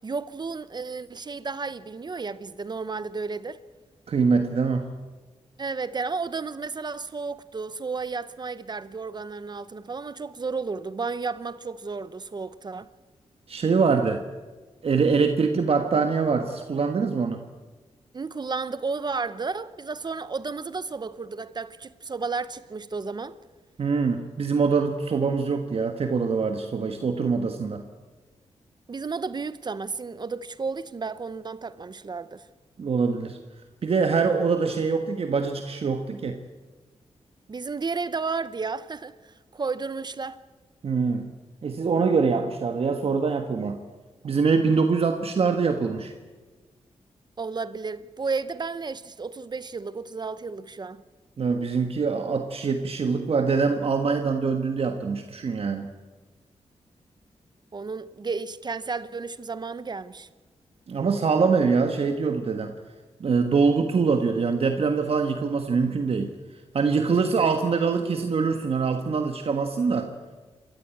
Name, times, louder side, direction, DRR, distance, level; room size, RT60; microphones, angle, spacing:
voice 1, 0.0-3.6 5.6-12.9 18.1-23.4 28.9-32.4 37.5-40.4 47.4-51.0 57.7-60.3, right 4 dB, 40° right, 0.8 m, -32 dB
voice 2, 4.1-4.9 13.5-14.2 14.8-17.4 23.8-27.8 32.8-33.4 33.8-36.4 40.8-41.3 41.6-43.8 44.2-46.1 51.4-55.9 60.9-62.8 63.2-66.3 66.7-70.1, right 5 dB, 60° right, 1.4 m, -24 dB
27.5 x 13.5 x 8.5 m
cardioid pair, 85°, 11 cm